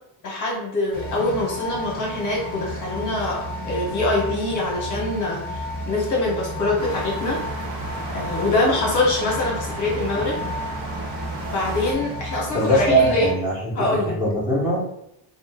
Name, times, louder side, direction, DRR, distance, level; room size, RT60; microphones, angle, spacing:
voice 1, 0.2-7.4 8.1-10.4 11.5-13.3 13.7-14.2, left 2 dB, 45° left, -2 dB, 0.8 m, -24 dB
sound 1, 0.9-13.3, equal, 35° right, 1.1 m, -32 dB
sound 2, 6.8-11.9, right 2 dB, 80° right, 0.8 m, -35 dB
voice 2, 12.5-13.9 14.2-14.8, right 1 dB, 10° right, -9 dB, 0.7 m, -21 dB
2.4 x 2.0 x 3.3 m, 0.75 s
cardioid pair, 180°, 45 cm